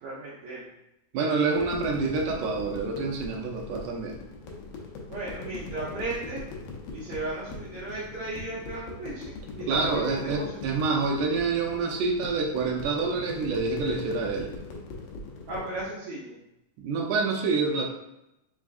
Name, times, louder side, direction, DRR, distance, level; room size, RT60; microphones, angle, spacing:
voice 1, 0.0-0.7 5.1-6.4 6.9-10.8 15.5-16.4, right 2 dB, 70° right, -9 dB, 2.0 m, -36 dB
voice 2, 1.1-4.2 9.7-14.5 16.8-17.9, right 4 dB, 85° right, 1 dB, 2.1 m, -27 dB
sound 1, 1.5-15.9, left 3 dB, 80° left, 1.4 m, -40 dB
5.0 x 3.5 x 2.4 m, 0.87 s
omnidirectional pair, 3.7 m